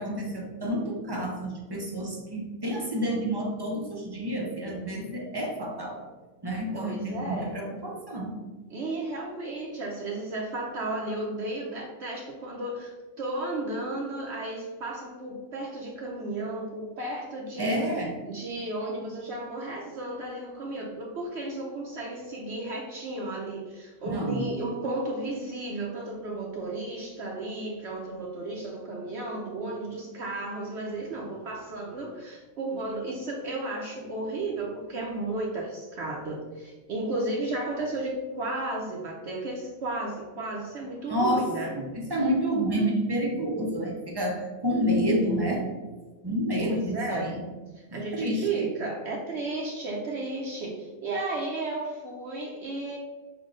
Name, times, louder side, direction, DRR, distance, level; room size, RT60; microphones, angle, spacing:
voice 1, 0.0-6.1 6.4-8.4 17.6-18.2 24.1-24.5 41.1-45.6 46.2-47.3 47.9-48.7, equal, 35° right, -1 dB, 0.4 m, -29 dB
voice 2, 6.7-7.6 8.7-17.8 18.3-41.7 46.6-47.3 47.7-53.0, right 2 dB, 60° right, -2 dB, 0.9 m, -34 dB
6.0 x 2.2 x 3.7 m, 1.2 s
omnidirectional pair, 1.4 m